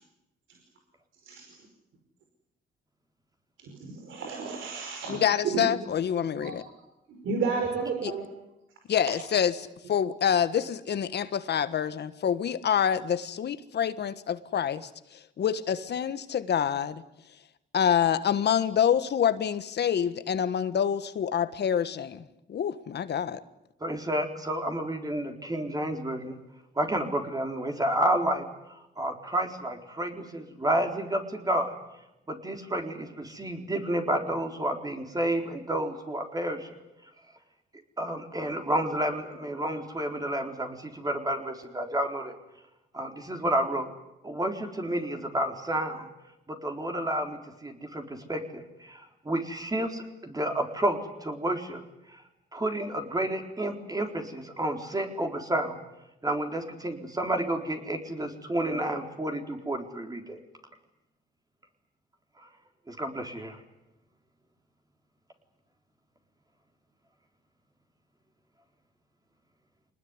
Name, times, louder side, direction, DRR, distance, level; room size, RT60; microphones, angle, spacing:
voice 1, 3.6-5.6 6.4-6.5 7.1-8.3, right 5 dB, 75° right, 3 dB, 5.1 m, -32 dB
voice 2, 5.1-6.6 8.0-8.1 8.9-14.9 15.4-17.0 17.7-23.4, left 8 dB, 60° left, 13 dB, 1.5 m, -27 dB
voice 3, 23.8-26.4 26.8-28.4 29.0-31.7 32.3-36.7 38.0-42.4 42.9-43.9 44.2-46.1 46.5-51.8 52.1-52.2 52.5-55.8 56.2-60.4 62.9-63.6, right 1 dB, 20° right, 3 dB, 4.2 m, -30 dB
25.5 x 20.0 x 9.8 m, 0.92 s
cardioid pair, 90°, 20 cm